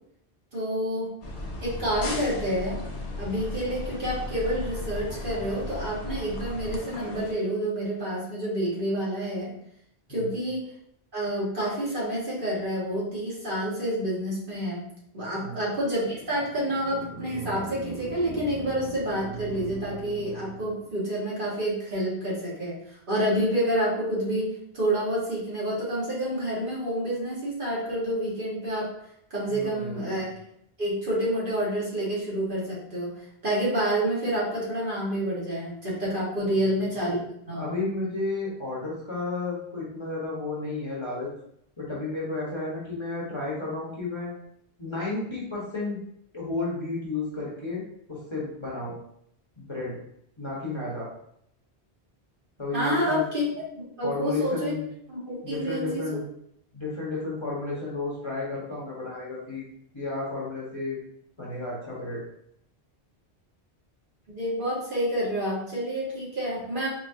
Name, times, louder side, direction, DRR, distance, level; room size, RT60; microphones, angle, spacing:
voice 1, 0.5-1.1 1.6-2.8 3.2-9.5 10.1-10.6 11.1-14.8 15.1-28.9 29.3-30.3 30.8-33.1 33.4-37.2 37.5-37.7 52.7-53.4 53.7-54.7 55.1-56.2 64.3-66.9, right 1 dB, 55° right, -6 dB, 1.5 m, -28 dB
sound 1, 1.2-7.3, left 2 dB, 85° left, 1.1 m, -35 dB
voice 2, 15.3-15.7 29.5-30.3 36.4-36.8 37.5-41.3 41.8-44.3 44.8-46.0 46.3-48.9 49.6-50.0 50.4-51.1 52.6-53.2 54.0-54.9 55.4-56.2 56.7-59.6 59.9-61.0 61.4-62.2, left 3 dB, 30° left, -6 dB, 0.9 m, -32 dB
sound 2, 16.1-21.0, right 3 dB, 20° right, 0.8 m, -40 dB
4.5 x 2.8 x 2.6 m, 0.71 s
omnidirectional pair, 1.1 m